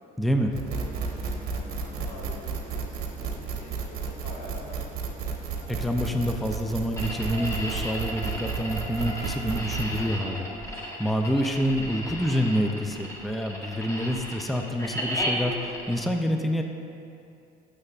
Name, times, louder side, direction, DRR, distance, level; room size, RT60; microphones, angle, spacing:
voice 1, 0.2-0.6 5.7-16.6, equal, ahead, 4 dB, 0.5 m, -27 dB
sound 1, 0.5-10.0, right 5 dB, 65° right, 1.0 m, -33 dB
voice 2, 0.7-5.2, left 2 dB, 90° left, -6 dB, 2.0 m, -46 dB
sound 2, 5.5-12.4 13.2-15.8, left 2 dB, 60° left, 1.9 m, -49 dB
sound 3, 7.0-16.0, equal, 15° left, 1.3 m, -34 dB
12.5 x 6.5 x 2.5 m, 2.5 s
cardioid pair, 110°, 17 cm